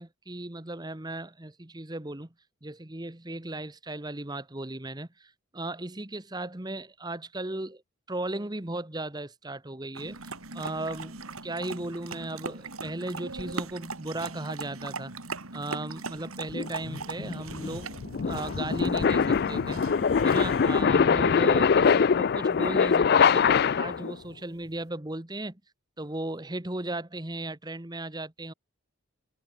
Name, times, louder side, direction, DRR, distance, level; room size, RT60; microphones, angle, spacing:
voice 1, 0.0-2.3 2.6-7.8 8.1-15.1 15.5-17.9 18.3-19.8 20.2-25.6 26.0-28.5, right 2 dB, 20° right, 1.1 m, -36 dB
sound 1, 9.9-20.8, right 3 dB, 75° right, 3.4 m, -40 dB
sound 2, 16.5-24.1, left 6 dB, 45° left, 0.3 m, -23 dB
head